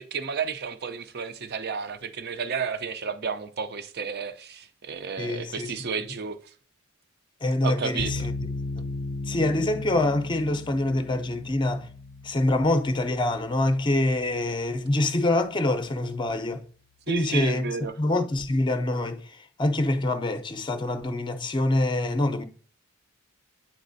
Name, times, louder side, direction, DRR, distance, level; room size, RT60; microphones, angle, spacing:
voice 1, 0.0-6.4 7.6-8.3 17.1-18.0, right 5 dB, 50° right, 0.6 m, -32 dB
voice 2, 5.2-5.7 6.0-6.1 7.4-8.3 8.8-8.9 9.3-11.9 12.2-16.6 17.1-17.7 18.0-22.4, left 2 dB, 20° left, 0.6 m, -25 dB
sound 1, 8.0-15.1, left 3 dB, 70° left, 0.4 m, -36 dB
8.9 x 4.1 x 2.6 m
head